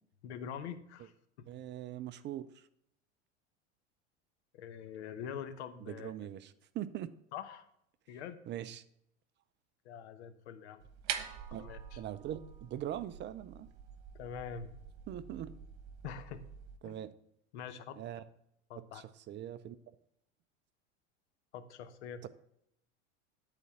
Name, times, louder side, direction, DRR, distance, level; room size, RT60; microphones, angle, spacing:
voice 1, 0.2-1.1 1.4-1.5 4.6-6.1 7.3-7.6 8.1-8.4 9.8-10.8 11.6-12.0 14.1-14.7 16.0-16.4 16.8-16.9 17.5-18.0 18.7-19.0 21.5-22.3, left 8 dB, 70° left, 10 dB, 1.1 m, -44 dB
voice 2, 1.5-2.7 5.8-7.1 8.5-8.8 11.5-11.7 12.0-13.7 15.1-15.6 16.8-17.1 18.0-18.2 18.7-19.8 22.2-22.3, right 11 dB, 30° right, 14 dB, 0.5 m, -42 dB
sound 1, 10.8-16.8, right 9 dB, 60° right, 1.2 m, -45 dB
10.5 x 4.4 x 5.7 m, 0.74 s
hypercardioid pair, 90°, 35 cm